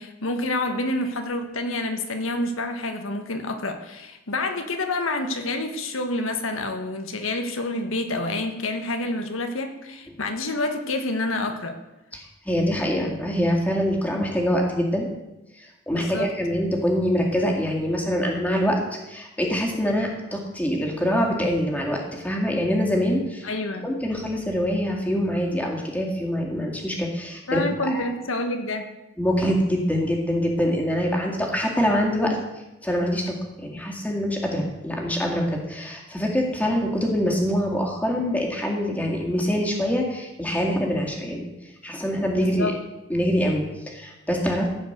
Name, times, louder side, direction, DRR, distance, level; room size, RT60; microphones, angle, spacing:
voice 1, 0.0-11.7 15.9-16.3 23.4-23.9 27.5-28.9 42.4-42.8, left 2 dB, 85° left, 6 dB, 1.3 m, -28 dB
voice 2, 12.1-15.1 15.6-18.8 19.1-23.5 23.8-28.1 29.2-32.4 32.8-41.5 41.8-42.7 43.1-44.7, equal, 5° left, -1 dB, 2.1 m, -24 dB
15.0 x 5.1 x 8.0 m, 0.97 s
head